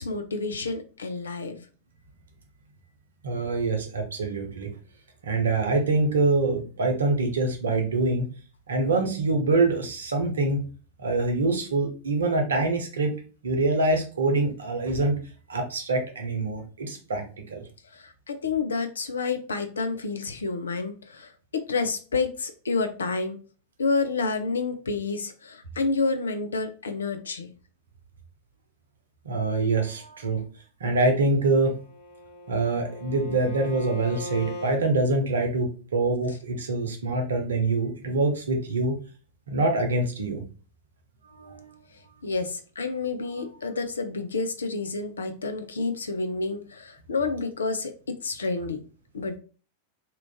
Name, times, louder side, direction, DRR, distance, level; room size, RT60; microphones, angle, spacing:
voice 1, 0.0-1.6 17.9-21.3 21.7-23.4 23.8-27.5 42.2-47.9 48.2-48.8 49.1-49.4, left 4 dB, 70° left, 8 dB, 0.5 m, -29 dB
voice 2, 3.2-4.7 5.2-8.3 8.7-10.7 11.0-13.1 13.4-15.2 15.5-17.2 17.5-17.6 29.2-30.4 30.8-31.8 32.5-39.0 39.5-40.4 41.3-41.7, right 2 dB, 70° right, 4 dB, 0.8 m, -25 dB
Bowed string instrument, 31.7-34.8, left 1 dB, 30° left, 1.0 m, -39 dB
3.0 x 2.5 x 3.4 m, 0.37 s
figure-of-eight pair, 90°, 0 cm